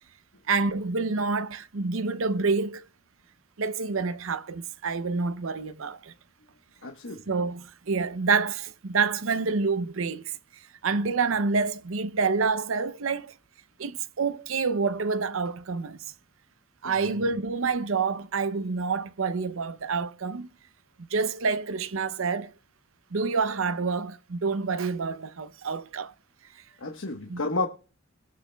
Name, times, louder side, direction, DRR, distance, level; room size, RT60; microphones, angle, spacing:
voice 1, 0.5-2.9 3.6-6.1 7.3-10.4 10.8-13.3 13.8-16.0 16.8-20.5 21.1-22.5 23.1-26.1 27.3-27.4, right 4 dB, 70° right, 0.7 m, -27 dB
voice 2, 6.8-7.2 16.8-17.2 26.8-27.7, left 3 dB, 70° left, 1.3 m, -31 dB
22.0 x 8.3 x 2.3 m
head